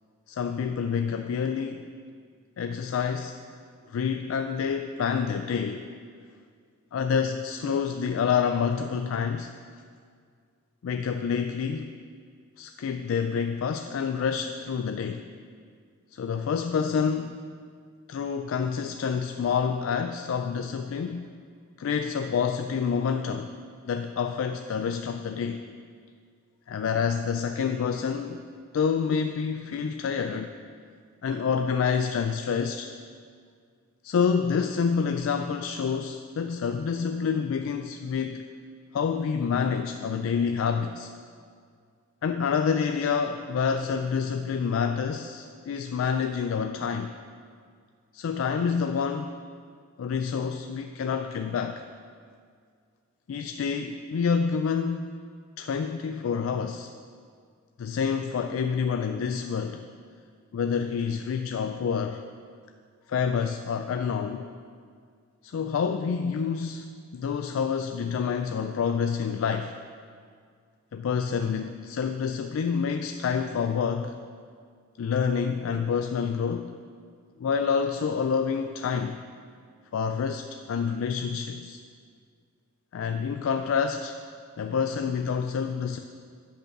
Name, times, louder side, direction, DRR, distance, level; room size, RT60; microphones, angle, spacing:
voice 1, 0.3-1.8 2.6-3.4 3.9-5.9 6.9-9.5 10.8-11.9 12.6-15.3 16.1-17.4 18.1-21.3 21.8-23.5 23.8-25.6 26.7-28.4 28.7-30.5 31.2-32.9 34.0-38.4 38.9-41.1 42.2-47.1 48.1-49.4 50.0-51.8 53.3-55.1 55.6-56.9 57.8-59.8 60.5-62.2 63.1-64.5 65.4-69.8 70.9-74.2 75.0-76.7 77.4-79.2 79.9-81.8 82.9-84.2 84.6-86.0, left 6 dB, 70° left, 7 dB, 0.3 m, -28 dB
8.8 x 5.4 x 5.9 m, 2.1 s
head